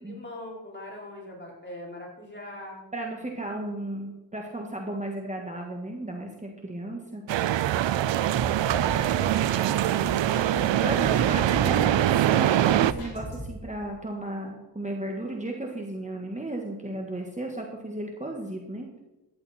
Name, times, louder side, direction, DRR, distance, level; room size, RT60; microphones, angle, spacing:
voice 1, 0.1-2.8 7.9-11.2 11.8-12.4, left 1 dB, 25° left, -3 dB, 5.1 m, -41 dB
voice 2, 2.9-7.2 10.8-18.9, right 1 dB, 15° right, 1 dB, 1.8 m, -34 dB
sound 1, 7.3-12.9, right 12 dB, 85° right, 0.6 m, -23 dB
sound 2, 8.3-9.7 10.0-12.4 12.6-13.7, equal, 50° left, 5.9 m, -38 dB
15.0 x 11.0 x 4.4 m, 1.0 s
cardioid pair, 80°, 43 cm